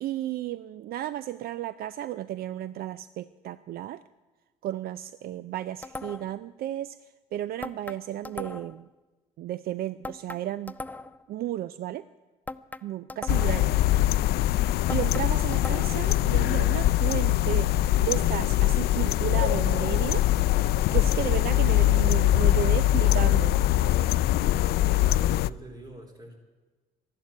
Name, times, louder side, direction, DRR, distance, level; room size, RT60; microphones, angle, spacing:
voice 1, 0.0-4.0 4.6-7.0 7.3-8.9 9.4-10.7 11.3-12.0 12.8-13.7 14.9-20.3 20.9-23.5, right 13 dB, 65° right, 16 dB, 0.5 m, -33 dB
sound 1, 5.8-6.4 7.6-8.8 10.0-11.3 12.5-13.7 14.9-16.1, left 2 dB, 10° left, 0.4 m, -39 dB
sound 2, 13.3-25.5, left 14 dB, 70° left, 0.4 m, -23 dB
voice 2, 25.0-26.4, right 1 dB, 20° right, 4 dB, 3.6 m, -44 dB
12.5 x 12.0 x 9.7 m, 1.3 s
cardioid pair, 110°, 17 cm